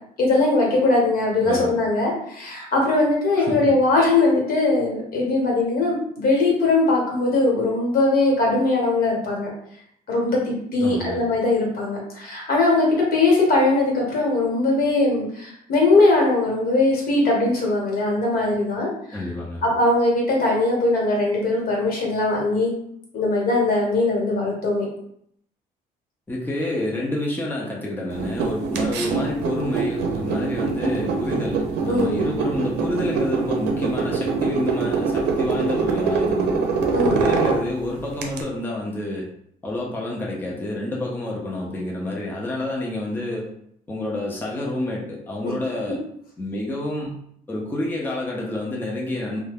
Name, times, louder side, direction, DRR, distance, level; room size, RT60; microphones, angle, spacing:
voice 1, 0.2-9.5 10.1-19.2 19.6-22.7 23.1-24.9 31.9-32.2 36.9-37.2, left 2 dB, 60° left, -2 dB, 1.2 m, -20 dB
voice 2, 10.8-11.2 19.1-19.6 26.3-36.6 37.0-39.3 39.6-43.5 43.9-46.0 46.4-47.1 47.5-49.4, left 1 dB, 10° left, -3 dB, 0.5 m, -28 dB
sound 1, 28.1-38.4, right 4 dB, 85° right, 0.6 m, -24 dB
2.7 x 2.2 x 3.5 m, 0.71 s
cardioid pair, 110°, 17 cm